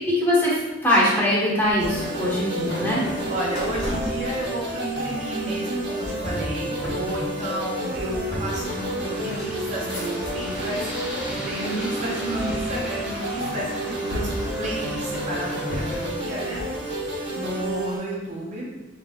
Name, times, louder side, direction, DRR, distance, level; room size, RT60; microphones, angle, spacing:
voice 1, 0.0-3.1, left 1 dB, 10° left, -7 dB, 1.2 m, -22 dB
sound 1, 1.6-10.7 11.1-11.8 12.5-13.6 14.1-16.2, equal, 65° left, 1.3 m, -35 dB
sound 2, 1.8-18.0, right 1 dB, 70° right, 1.0 m, -30 dB
voice 2, 3.3-10.9 11.5-14.3 14.6-16.6 17.4-18.7, right 1 dB, 40° right, -4 dB, 0.6 m, -31 dB
Aircraft, 8.5-16.1, equal, 5° right, 0.7 m, -37 dB
3.9 x 3.3 x 2.3 m, 1.2 s
head